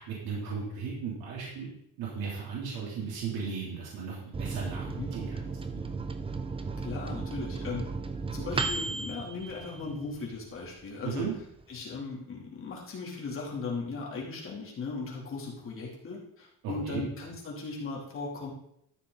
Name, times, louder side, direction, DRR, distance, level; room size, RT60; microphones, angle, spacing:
voice 1, 0.0-1.7 2.0-4.9 5.1-5.8 11.0-11.3 16.6-17.0, right 6 dB, 70° right, -5 dB, 3.5 m, -36 dB
Microwave oven, 4.3-10.4 10.8-10.9 11.2-11.8, right 4 dB, 15° right, 0.5 m, -35 dB
voice 2, 6.8-7.9 8.3-11.3 11.7-18.5, left 4 dB, 35° left, -2 dB, 3.2 m, -37 dB
13.0 x 6.6 x 4.1 m, 0.73 s
cardioid pair, 155°, 39 cm